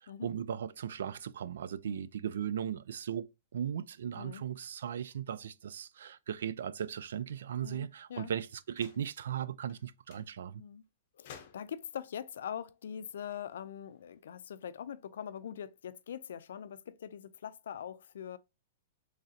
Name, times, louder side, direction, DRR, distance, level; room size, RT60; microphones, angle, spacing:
voice 1, 0.0-10.6, right 9 dB, 80° right, 0.3 m, -37 dB
voice 2, 7.6-8.3 10.6-10.9 11.1-18.4, left 9 dB, 80° left, 0.4 m, -43 dB
sound 1, 8.7-9.2 9.7-9.8 10.1-10.3 11.3-11.9 13.1-14.2, left 7 dB, 45° left, 0.6 m, -55 dB
3.8 x 3.2 x 2.7 m
supercardioid pair, 170°, 0 cm